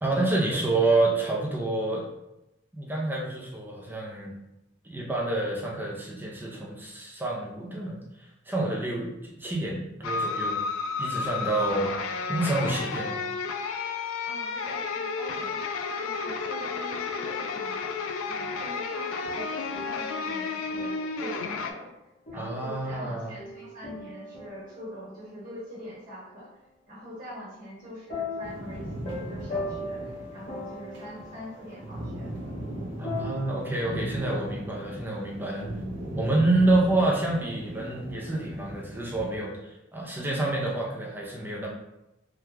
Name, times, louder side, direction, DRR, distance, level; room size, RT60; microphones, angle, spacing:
voice 1, 0.0-2.0 2.7-4.3 4.8-10.6 11.0-11.9 12.3-13.2 22.3-23.3 33.0-35.7 36.1-41.7, right 2 dB, 10° right, -3 dB, 0.5 m, -28 dB
sound 1, 10.0-21.7, left 4 dB, 80° left, 0.3 m, -32 dB
voice 2, 14.2-15.6 16.0-17.8 18.2-21.9 22.3-26.5 26.9-32.3, equal, 40° right, -7 dB, 1.4 m, -43 dB
sound 2, 18.6-21.3 22.3-25.6 28.1-34.1, left 2 dB, 40° left, 0.8 m, -40 dB
sound 3, 28.4-39.4, right 1 dB, 60° right, 0.8 m, -38 dB
3.5 x 2.2 x 2.9 m, 0.93 s
head